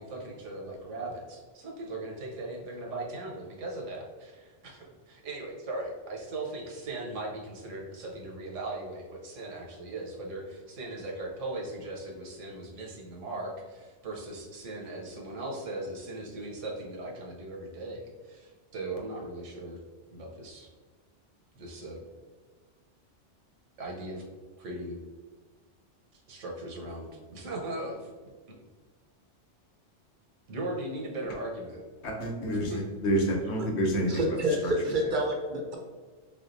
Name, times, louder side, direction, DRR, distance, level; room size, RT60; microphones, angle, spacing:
voice 1, 0.0-19.8 20.1-20.7 21.6-22.0 23.8-24.2 24.6-25.0 26.1-28.1 30.5-31.8 32.5-32.8, right 2 dB, 85° right, -1 dB, 1.2 m, -38 dB
voice 2, 32.0-34.1 34.6-34.7, equal, 65° left, 0 dB, 1.0 m, -28 dB
voice 3, 34.1-35.8, right 1 dB, 50° right, 0 dB, 0.7 m, -28 dB
3.5 x 3.4 x 2.6 m, 1.4 s
omnidirectional pair, 1.2 m